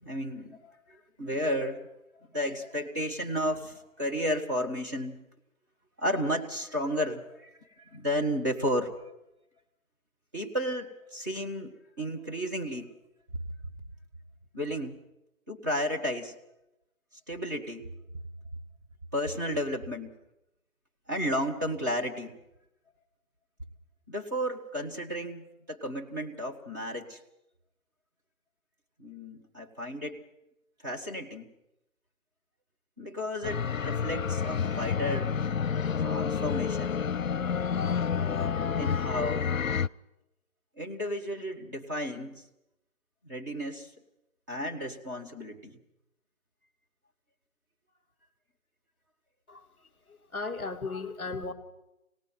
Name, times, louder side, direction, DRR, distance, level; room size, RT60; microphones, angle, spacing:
voice 1, 0.0-1.9 2.1-5.2 6.0-9.1 10.3-12.9 14.5-15.0 15.5-16.3 17.3-17.9 19.1-20.1 21.1-22.4 24.1-27.2 29.0-30.2 30.8-31.5 33.0-35.3 36.0-37.0 38.7-39.5 40.8-42.4 43.2-43.9 44.5-45.8, equal, 15° right, -1 dB, 1.3 m, -33 dB
sound 1, 33.4-39.9, left 6 dB, 70° left, 0.7 m, -29 dB
voice 2, 49.5-51.5, left 3 dB, 5° left, -5 dB, 1.2 m, -37 dB
27.0 x 18.5 x 5.9 m, 0.89 s
figure-of-eight pair, 160°, 42 cm